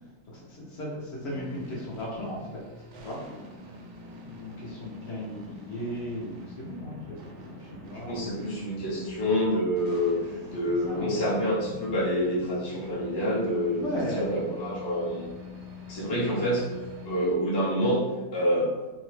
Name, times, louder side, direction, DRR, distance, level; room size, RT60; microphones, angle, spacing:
voice 1, 0.3-3.2 4.2-8.4 10.8-11.4 13.8-14.7 15.0-15.2 16.3-16.5, equal, 60° left, -4 dB, 0.8 m, -36 dB
sound 1, 1.2-17.4, left 3 dB, 90° right, 1.1 m, -44 dB
voice 2, 8.1-10.2 10.5-15.2 15.9-16.7 17.0-18.0 18.3-18.7, equal, 40° left, -6 dB, 0.3 m, -27 dB
2.8 x 2.0 x 3.1 m, 1.1 s
omnidirectional pair, 1.5 m